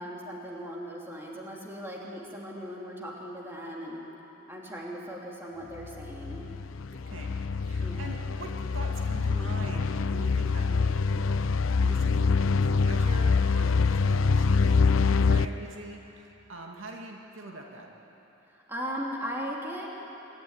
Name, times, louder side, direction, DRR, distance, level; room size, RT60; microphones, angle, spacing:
voice 1, 0.0-4.1 4.5-6.5 7.8-8.0 18.5-19.9, equal, 10° right, -3 dB, 3.0 m, -38 dB
sound 1, 5.8-15.5, left 4 dB, 85° left, 0.6 m, -25 dB
voice 2, 7.1-7.4 7.6-11.5 11.8-14.8 15.2-17.9, right 2 dB, 80° right, 0 dB, 2.3 m, -43 dB
25.5 x 12.5 x 9.7 m, 3.0 s
head